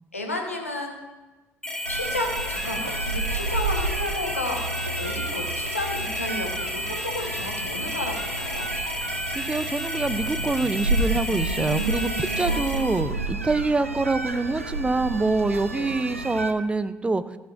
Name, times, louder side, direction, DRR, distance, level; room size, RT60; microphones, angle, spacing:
voice 1, 0.1-0.9 1.9-8.7 12.4-12.6 15.7-15.9, left 2 dB, 85° left, 2 dB, 1.1 m, -32 dB
sound 1, 1.6-13.0, left 1 dB, 10° left, 1.6 m, -32 dB
sound 2, 1.8-16.5, right 2 dB, 90° right, 0.4 m, -30 dB
voice 2, 9.3-17.2, right 3 dB, 15° right, 13 dB, 0.5 m, -25 dB
13.5 x 11.0 x 2.5 m, 1.2 s
figure-of-eight pair, 50°, 7 cm